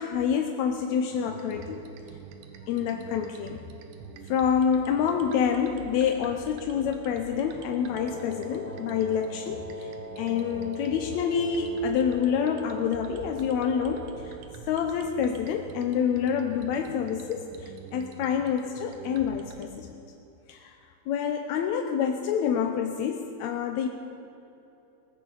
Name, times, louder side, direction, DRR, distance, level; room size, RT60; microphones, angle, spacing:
voice 1, 0.0-1.8 2.6-3.6 4.3-9.9 10.2-14.4 14.7-19.9 20.5-20.8 21.1-23.9, left 7 dB, 75° left, 4 dB, 1.8 m, -27 dB
sound 1, 1.1-19.7, right 7 dB, 80° right, 2.4 m, -46 dB
Wind instrument woodwind instrument, 7.9-14.4, left 2 dB, 20° left, 0.8 m, -41 dB
19.5 x 15.0 x 3.9 m, 2.9 s
omnidirectional pair, 3.7 m